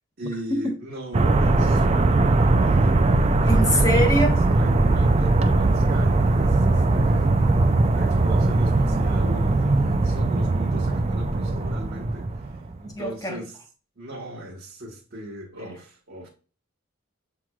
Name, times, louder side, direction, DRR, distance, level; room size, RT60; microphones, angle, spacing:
voice 1, 0.2-4.0 4.5-7.3 7.9-13.6 14.0-16.3, equal, 55° right, 1.2 m, -38 dB
sound 1, 1.1-12.8, right 2 dB, 30° right, 0.4 m, -20 dB
voice 2, 3.5-4.4 13.0-13.4, equal, 20° left, 0.9 m, -23 dB
7.3 x 3.0 x 2.3 m
head